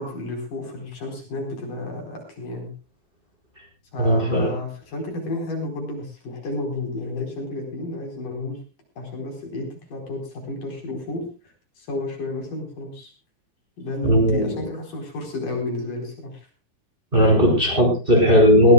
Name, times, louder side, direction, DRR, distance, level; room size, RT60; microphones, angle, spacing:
voice 1, 0.0-2.7 3.9-8.6 9.0-11.3 11.8-13.1 13.8-16.5, left 2 dB, 60° left, 2 dB, 6.0 m, -31 dB
voice 2, 4.0-4.5 14.0-14.6 17.1-18.7, equal, 15° right, 1 dB, 5.0 m, -16 dB
21.5 x 16.0 x 2.3 m, 0.32 s
omnidirectional pair, 4.3 m